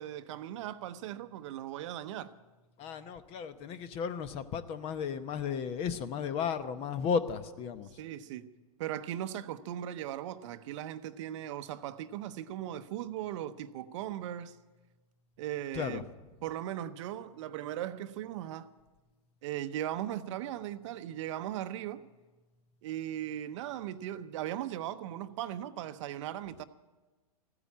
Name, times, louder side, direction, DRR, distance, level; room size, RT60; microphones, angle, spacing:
voice 1, 0.0-2.3 8.0-8.5 8.8-14.6 15.4-16.0 16.4-18.7 19.4-22.0 22.8-26.6, right 12 dB, 50° right, 0.8 m, -38 dB
voice 2, 2.8-7.9 15.7-16.1, left 6 dB, 30° left, 0.9 m, -34 dB
15.0 x 9.8 x 8.5 m
hypercardioid pair, 130°, 19 cm